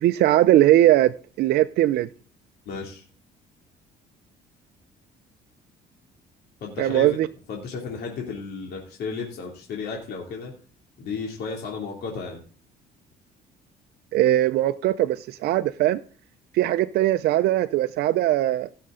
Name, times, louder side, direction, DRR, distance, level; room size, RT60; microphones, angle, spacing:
voice 1, 0.0-2.1 6.8-7.3 14.1-16.0 16.5-18.7, right 14 dB, 70° right, 0.6 m, -20 dB
voice 2, 2.7-3.0 6.6-7.1 7.5-10.5 11.0-12.4, left 5 dB, 70° left, 2.9 m, -33 dB
16.0 x 6.6 x 3.8 m
cardioid pair, 110°, 17 cm